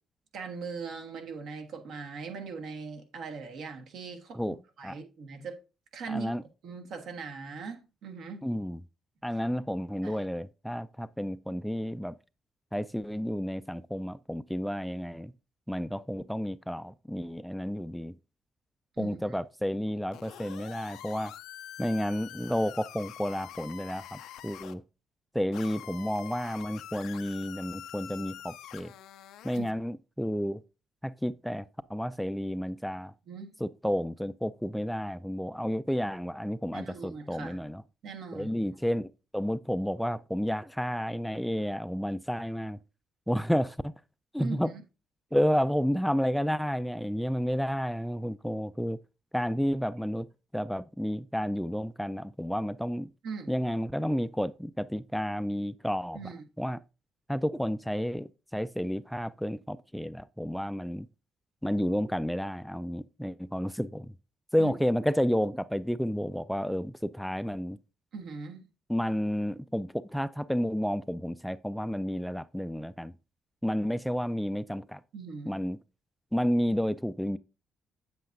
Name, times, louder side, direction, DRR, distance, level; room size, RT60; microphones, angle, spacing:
voice 1, 0.3-5.6 5.9-6.3 6.6-8.4 10.0-10.2 19.0-19.3 29.5-29.7 33.3-33.6 36.7-37.6 38.0-38.5 44.4-44.8 53.2-53.5 56.1-56.4 64.6-64.7 68.1-68.7 75.1-75.6, right 5 dB, 75° right, 1.4 m, -40 dB
voice 2, 6.1-6.4 8.4-8.8 9.2-12.1 12.7-15.3 15.7-18.1 19.0-21.3 21.8-24.8 25.3-28.9 29.4-30.6 31.0-31.6 31.9-33.1 33.6-37.8 38.3-42.8 43.3-43.9 44.3-44.7 45.3-49.0 49.3-50.3 50.5-53.1 53.5-56.2 56.6-56.8 57.3-61.1 61.6-64.1 64.5-67.8 68.9-73.1 73.6-75.0 75.5-75.8 76.3-77.4, equal, ahead, 0.3 m, -31 dB
sound 1, 20.1-24.7 25.5-29.7, left 12 dB, 90° left, 0.5 m, -45 dB
8.2 x 7.7 x 2.6 m
cardioid pair, 90°, 0 cm